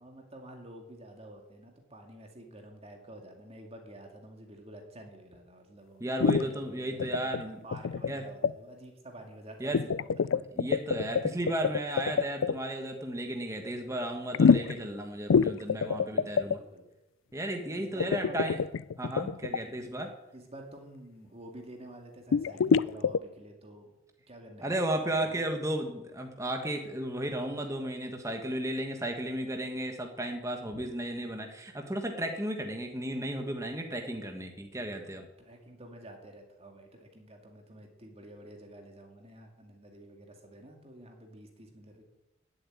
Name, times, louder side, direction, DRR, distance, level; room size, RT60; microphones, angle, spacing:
voice 1, 0.0-10.4 15.3-15.4 15.7-16.9 17.7-18.4 20.0-20.1 20.3-23.9 24.3-25.5 30.7-30.9 35.4-42.0, right 1 dB, 30° right, 3 dB, 2.2 m, -49 dB
voice 2, 6.0-7.6 8.1-8.2 9.6-9.9 10.6-16.6 17.3-18.6 19.0-20.1 24.6-35.3, right 1 dB, 15° right, 4 dB, 1.3 m, -34 dB
sound 1, 6.2-6.5 7.0-7.4 7.7-8.1 8.4-8.5 9.7-12.6 14.3-14.8 15.3-16.6 18.0-19.6 22.3-23.2, left 6 dB, 70° left, 0.4 m, -25 dB
15.5 x 7.7 x 9.9 m, 0.99 s
head